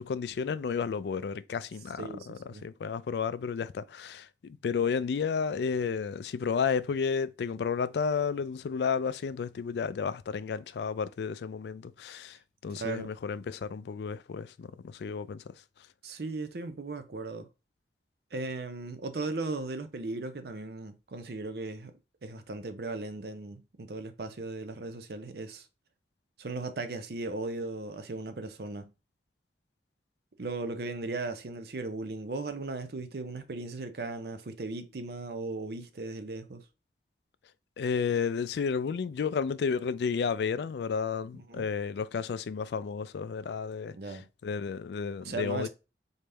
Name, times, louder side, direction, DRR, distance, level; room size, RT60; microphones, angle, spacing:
voice 1, 0.0-15.5 37.8-45.7, left 6 dB, 75° left, 0.3 m, -32 dB
voice 2, 2.0-2.7 12.7-13.1 16.0-17.5 18.3-21.9 22.2-25.7 26.4-28.9 30.4-36.6 41.3-41.7 43.9-44.2 45.2-45.7, right 3 dB, 65° right, 0.6 m, -37 dB
4.0 x 3.4 x 3.3 m
head